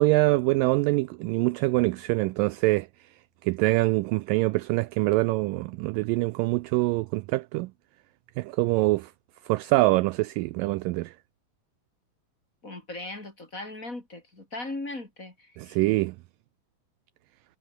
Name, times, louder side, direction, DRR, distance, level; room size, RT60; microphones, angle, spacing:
voice 1, 0.0-2.9 3.4-7.7 8.4-9.1 9.5-11.1 15.6-16.2, right 21 dB, 80° right, 2.0 m, -24 dB
voice 2, 12.6-15.8, left 2 dB, 20° left, 4.1 m, -38 dB
omnidirectional pair, 4.3 m